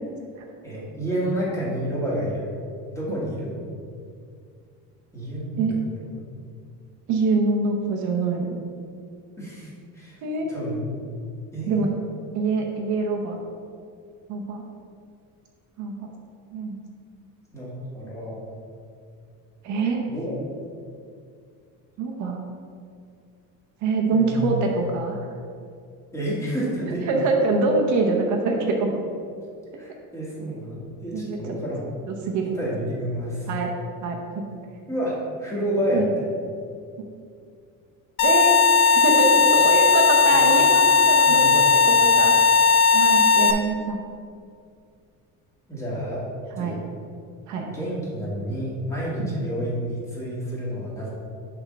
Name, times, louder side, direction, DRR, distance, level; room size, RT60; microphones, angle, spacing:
voice 1, 0.6-2.5 2.9-3.5 5.1-6.1 9.4-10.2 10.5-10.8 11.5-11.8 17.5-18.4 20.1-20.2 24.1-24.7 26.1-27.0 29.8-31.9 32.5-33.5 34.9-36.3 40.3-40.6 41.2-41.6 45.7-46.2 46.6-46.8 47.7-51.1, equal, 10° left, -7 dB, 1.7 m, -29 dB
voice 2, 7.1-8.6 10.2-10.5 11.6-11.9 12.3-13.4 14.3-14.6 15.8-16.1 16.5-16.8 19.6-20.0 22.0-22.4 23.8-25.2 27.1-29.0 31.1-31.4 32.1-32.6 33.5-33.7 34.0-34.5 35.9-36.1 38.2-42.3 42.9-44.0 46.6-46.7 47.5-47.7 49.2-49.4, right 3 dB, 55° right, 1 dB, 0.9 m, -24 dB
sound 1, 38.2-43.5, left 4 dB, 85° left, 0.8 m, -17 dB
6.7 x 3.6 x 6.2 m, 2.3 s
cardioid pair, 170°, 34 cm